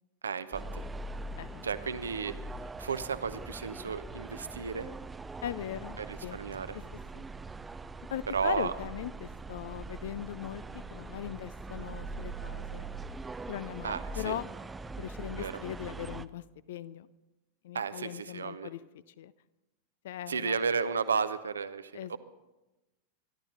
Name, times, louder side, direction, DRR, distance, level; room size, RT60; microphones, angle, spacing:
voice 1, 0.2-0.8 1.6-2.4 2.8-4.9 6.0-6.8 8.3-8.7 13.8-14.3 15.4-15.5 17.7-18.7 20.3-22.2, right 5 dB, 70° right, 12 dB, 0.8 m, -33 dB
sound 1, 0.5-16.3, right 3 dB, 10° right, 0.5 m, -42 dB
voice 2, 1.4-1.7 5.4-6.4 6.7-6.8 7.1-7.2 8.1-12.9 13.5-14.5 15.0-17.1 17.6-18.8 19.1-19.3 20.0-20.6 21.9-22.2, left 12 dB, 55° left, 18 dB, 0.5 m, -39 dB
24.5 x 11.5 x 3.8 m, 1.0 s
figure-of-eight pair, 90°, 0 cm